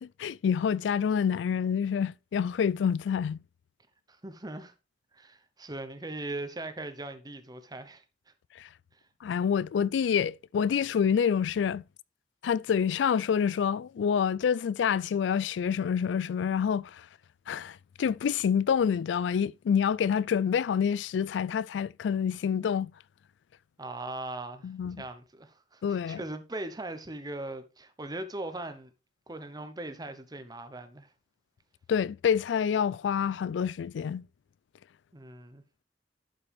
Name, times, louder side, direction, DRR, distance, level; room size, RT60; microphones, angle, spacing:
voice 1, 0.0-3.4 8.6-8.7 9.2-11.8 12.4-17.1 17.5-22.9 24.6-25.0 25.8-26.2 31.9-34.3, left 7 dB, 80° left, 0.3 m, -27 dB
voice 2, 4.1-4.7 5.1-8.0 23.8-24.7 25.0-28.9 29.3-31.1 35.1-35.6, right 2 dB, 20° right, 1.0 m, -39 dB
11.5 x 5.3 x 3.5 m
head